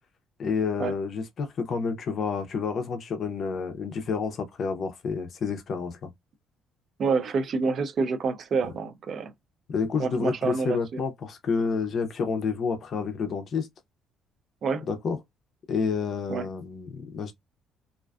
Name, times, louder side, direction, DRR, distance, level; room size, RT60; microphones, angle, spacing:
voice 1, 0.4-6.1 8.6-8.7 9.7-13.7 14.9-15.2 15.7-17.3, left 5 dB, 40° left, 0.5 m, -29 dB
voice 2, 7.0-9.3 10.0-11.0 14.6-14.9 16.3-16.5, right 4 dB, 40° right, 0.4 m, -27 dB
2.4 x 2.3 x 2.2 m
cardioid pair, 165°, 0 cm